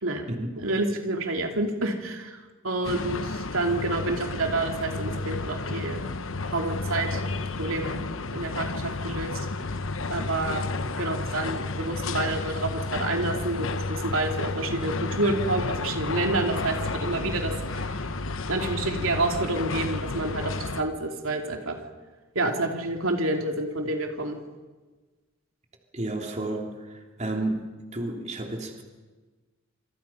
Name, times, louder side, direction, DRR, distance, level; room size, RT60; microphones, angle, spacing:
voice 1, 0.6-6.0 6.5-7.2 7.6-9.4 10.1-10.6 11.0-18.1 18.5-21.8 22.3-24.4, right 2 dB, 80° right, 3 dB, 2.8 m, -29 dB
sound 1, 2.8-20.8, left 3 dB, 70° left, 1.1 m, -31 dB
voice 2, 25.9-27.6 27.9-28.8, right 2 dB, 35° right, 2 dB, 3.3 m, -31 dB
27.5 x 27.0 x 5.8 m, 1.3 s
head